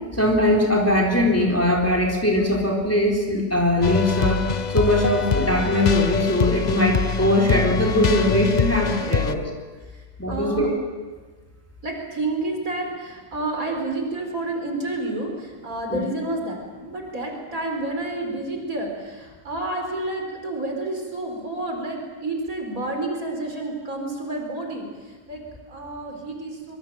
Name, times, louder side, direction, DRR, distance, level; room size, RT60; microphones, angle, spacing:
voice 1, 0.1-4.4 4.7-9.4 10.2-10.7 15.9-16.0, left 1 dB, 10° left, -1 dB, 3.8 m, -21 dB
sound 1, 3.8-9.3, left 6 dB, 45° left, 0.6 m, -24 dB
voice 2, 9.9-10.7 11.8-26.8, right 2 dB, 55° right, 2 dB, 4.8 m, -30 dB
25.0 x 23.0 x 7.6 m, 1.4 s
omnidirectional pair, 1.8 m